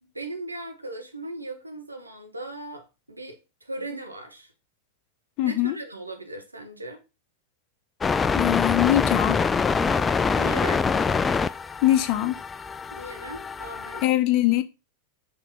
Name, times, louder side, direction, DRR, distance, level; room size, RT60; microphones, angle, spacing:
voice 1, 0.0-4.5 5.4-7.0 9.9-10.8 12.9-14.0, right 2 dB, 90° right, 1.2 m, -38 dB
voice 2, 5.4-5.8 8.3-9.4 11.8-12.4 14.0-14.6, left 15 dB, 40° left, 0.8 m, -22 dB
sound 1, 8.0-14.0, left 5 dB, 15° left, 0.3 m, -25 dB
5.9 x 3.4 x 5.6 m
figure-of-eight pair, 90°, 0 cm